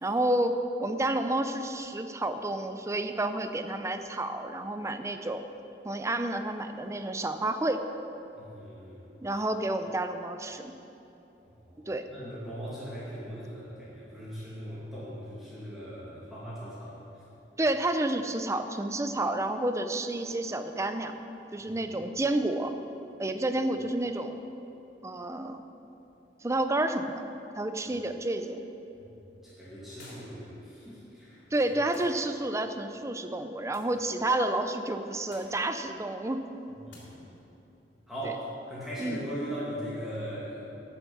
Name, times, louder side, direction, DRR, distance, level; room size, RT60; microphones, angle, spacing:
voice 1, 0.0-0.5 0.8-5.4 5.8-7.8 9.2-10.7 11.8-12.1 17.6-21.2 21.5-22.7 23.2-24.5 25.0-25.6 26.4-27.2 27.5-28.6 31.5-36.4 38.2-38.3 39.0-39.2, right 1 dB, 15° right, 8 dB, 0.6 m, -30 dB
voice 2, 8.3-9.0 11.6-17.0 21.6-21.7 29.4-31.4 36.8-37.2 38.1-40.7, equal, ahead, -10 dB, 2.1 m, -39 dB
sound 1, 30.0-30.5 31.9-32.3 33.7-34.0 35.3-35.6 36.9-37.1, left 1 dB, 85° left, 3.2 m, -51 dB
11.5 x 7.3 x 7.0 m, 2.9 s
head